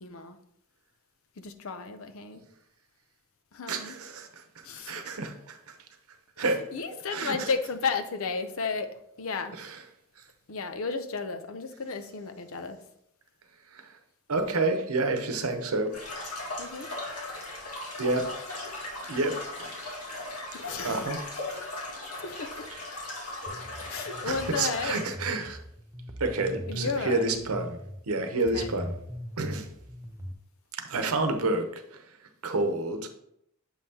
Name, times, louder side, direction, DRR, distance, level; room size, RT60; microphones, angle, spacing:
voice 1, 0.0-0.4 1.4-2.4 3.5-3.9 4.6-5.0 6.7-9.6 10.5-12.8 16.6-16.9 20.5-21.1 22.1-22.7 23.9-25.0 26.7-27.3 28.3-28.8, left 4 dB, 65° left, 9 dB, 0.6 m, -33 dB
voice 2, 3.7-4.3 4.6-5.7 6.4-6.6 7.1-7.5 9.5-9.8 13.7-14.0 14.3-15.9 17.0-17.1 18.0-18.3 19.1-20.0 20.8-21.3 24.3-25.6 26.2-27.8 28.1-29.0 29.4-29.7 30.7-32.0 32.4-33.1, right 2 dB, 75° right, 6 dB, 0.9 m, -29 dB
sound 1, 15.9-25.0, left 2 dB, 85° left, 1.8 m, -38 dB
sound 2, 23.5-30.3, equal, 15° right, 0.6 m, -41 dB
7.2 x 5.5 x 2.8 m, 0.75 s
head